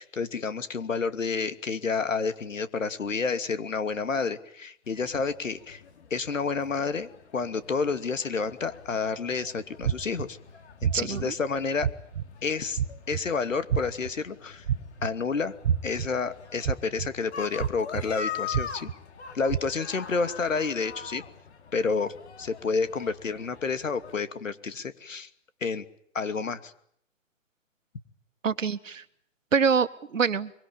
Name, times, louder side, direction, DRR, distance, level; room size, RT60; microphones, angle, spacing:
voice 1, 0.0-5.8 6.1-10.4 10.8-11.9 12.4-12.8 13.1-14.7 15.0-15.5 15.8-18.9 19.3-21.2 21.7-25.3 25.6-25.8 26.1-26.7, left 5 dB, 75° left, 11 dB, 2.7 m, -30 dB
sound 1, 4.8-24.1, left 6 dB, 55° left, 4.2 m, -44 dB
sound 2, 9.8-10.3 10.8-11.2 11.8-12.2 12.8-13.2 13.7-14.1 14.7-15.1 15.6-16.1 16.6-17.1 17.6-18.0 18.5-18.9 19.5-19.6, right 9 dB, 50° right, 2.4 m, -27 dB
voice 2, 10.9-11.3 28.4-29.0 29.5-30.5, right 6 dB, 75° right, 13 dB, 1.7 m, -25 dB
24.5 x 23.5 x 8.9 m, 0.69 s
hypercardioid pair, 140°, 38 cm